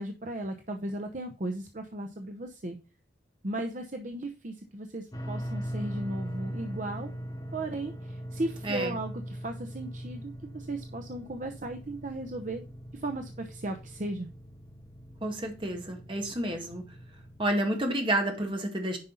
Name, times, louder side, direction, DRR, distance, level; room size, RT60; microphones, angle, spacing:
voice 1, 0.0-2.8 3.4-7.1 7.5-12.6 12.9-14.3, right 1 dB, 45° right, 5 dB, 0.8 m, -36 dB
sound 1, 5.1-17.4, equal, 20° left, 1.5 m, -41 dB
voice 2, 8.6-9.0 15.2-16.9 17.4-19.0, right 1 dB, 30° right, 3 dB, 1.9 m, -30 dB
9.7 x 5.4 x 3.9 m, 0.31 s
head